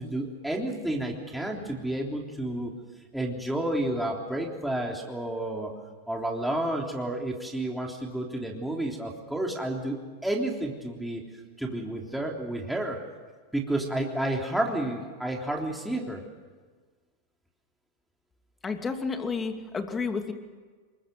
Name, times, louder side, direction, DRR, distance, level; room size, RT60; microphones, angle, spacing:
voice 1, 0.0-2.7 3.1-5.7 6.1-11.2 11.6-13.0 13.5-16.2, right 1 dB, ahead, 0 dB, 3.4 m, -31 dB
voice 2, 18.6-20.3, left 4 dB, 20° left, 5 dB, 2.8 m, -31 dB
23.5 x 21.5 x 7.8 m, 1.5 s
hypercardioid pair, 115°, 0 cm